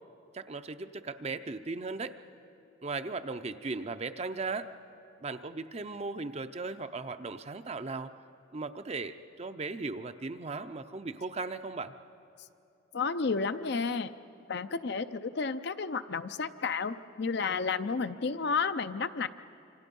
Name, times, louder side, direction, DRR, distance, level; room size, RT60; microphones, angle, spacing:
voice 1, 0.3-2.2 2.8-4.7 5.2-8.1 8.5-11.9, right 3 dB, 30° right, 10 dB, 0.6 m, -37 dB
voice 2, 12.9-14.1 14.5-19.3, left 4 dB, 55° left, 11 dB, 0.6 m, -31 dB
27.0 x 25.5 x 5.4 m, 2.6 s
head